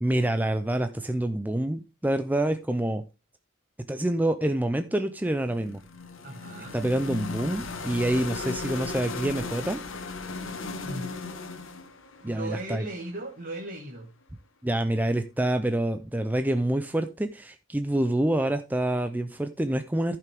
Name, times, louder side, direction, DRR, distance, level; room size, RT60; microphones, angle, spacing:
voice 1, 0.0-3.0 3.9-5.8 6.7-9.8 12.2-12.8 14.6-20.2, right 1 dB, 10° right, 8 dB, 0.5 m, -27 dB
sound 1, 5.4-13.4, left 4 dB, 70° left, 1.4 m, -37 dB
voice 2, 6.2-6.7 10.8-11.2 12.2-14.1, right 2 dB, 45° right, 1 dB, 1.4 m, -37 dB
14.0 x 5.8 x 3.5 m, 0.28 s
head